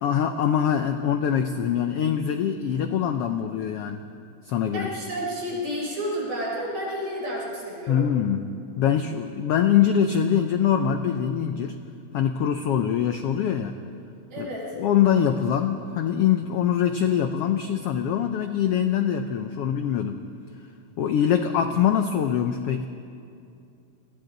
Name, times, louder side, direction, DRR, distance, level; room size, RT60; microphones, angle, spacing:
voice 1, 0.0-4.0 4.4-4.9 7.9-11.8 12.1-13.8 14.4-14.5 14.7-20.2 21.0-22.9, left 8 dB, 80° left, 7 dB, 1.3 m, -23 dB
voice 2, 4.7-8.1 14.3-14.8, equal, 65° right, -4 dB, 6.9 m, -31 dB
29.5 x 22.5 x 4.0 m, 2.5 s
omnidirectional pair, 3.6 m